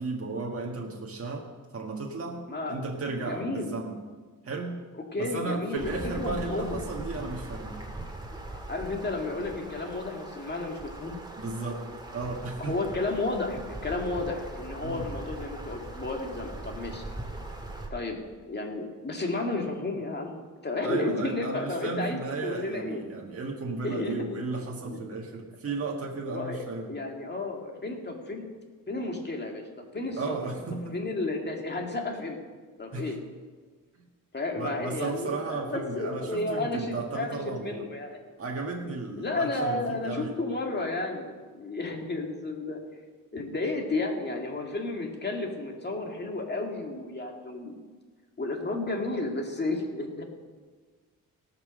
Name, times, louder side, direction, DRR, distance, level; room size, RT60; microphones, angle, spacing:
voice 1, 0.0-1.5 1.7-4.0 4.4-4.9 5.2-7.9 11.4-12.8 14.8-15.1 20.8-26.9 30.1-31.0 32.9-33.1 34.5-37.9 38.4-40.4, right 3 dB, 45° right, -1 dB, 1.5 m, -34 dB
voice 2, 2.5-2.8 3.2-3.7 4.9-6.8 8.7-11.2 12.6-17.0 17.9-18.2 18.5-23.0 23.8-24.4 24.9-25.0 26.3-28.5 28.9-30.5 30.9-32.4 32.8-33.2 34.3-38.2 39.2-42.8 43.3-47.8 48.4-50.2, left 2 dB, 30° left, 1 dB, 2.1 m, -32 dB
sound 1, 5.8-17.9, right 1 dB, 15° right, 1.8 m, -40 dB
18.0 x 6.0 x 6.4 m, 1.4 s
cardioid pair, 105°, 33 cm